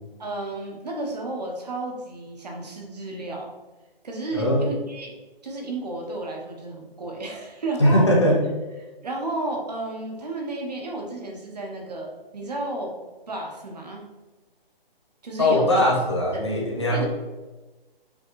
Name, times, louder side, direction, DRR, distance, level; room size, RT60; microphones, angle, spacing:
voice 1, 0.2-3.5 4.0-5.2 5.4-8.1 9.0-14.0 15.2-15.7 16.3-16.5 16.9-17.1, right 2 dB, 45° right, 1 dB, 0.9 m, -32 dB
voice 2, 4.3-4.7 7.8-8.4 15.4-17.0, left 1 dB, 30° left, -1 dB, 0.6 m, -20 dB
5.2 x 3.2 x 3.0 m, 1.2 s
hypercardioid pair, 175°, 30 cm